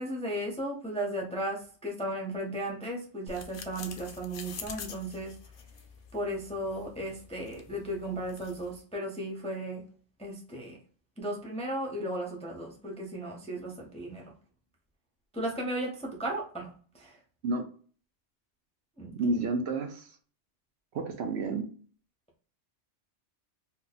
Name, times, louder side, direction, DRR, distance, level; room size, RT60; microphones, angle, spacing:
voice 1, 0.0-5.3 6.1-9.8 10.2-10.8 11.2-14.2 15.3-17.2 19.0-19.2, right 1 dB, 10° left, -1 dB, 0.4 m, -35 dB
sound 1, 3.3-8.8, left 6 dB, 60° left, 0.6 m, -47 dB
voice 2, 19.2-20.1 20.9-21.7, right 3 dB, 70° right, 6 dB, 0.8 m, -30 dB
2.8 x 2.2 x 3.8 m, 0.43 s
omnidirectional pair, 1.2 m